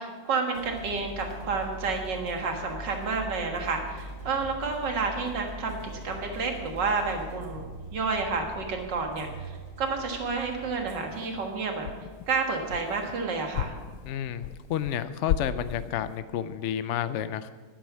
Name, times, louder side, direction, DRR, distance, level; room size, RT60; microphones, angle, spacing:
voice 1, 0.0-9.5 9.8-11.9 12.3-13.7, right 4 dB, 85° right, 3 dB, 2.3 m, -30 dB
sound 1, 0.5-13.9, equal, 65° right, 4.0 m, -43 dB
sound 2, 11.1-11.5 11.8-13.2 13.5-15.0 15.3-16.2, left 10 dB, 85° left, 1.2 m, -34 dB
voice 2, 14.0-17.5, left 10 dB, 70° left, 13 dB, 0.7 m, -31 dB
11.5 x 10.0 x 7.4 m, 1.4 s
omnidirectional pair, 1.9 m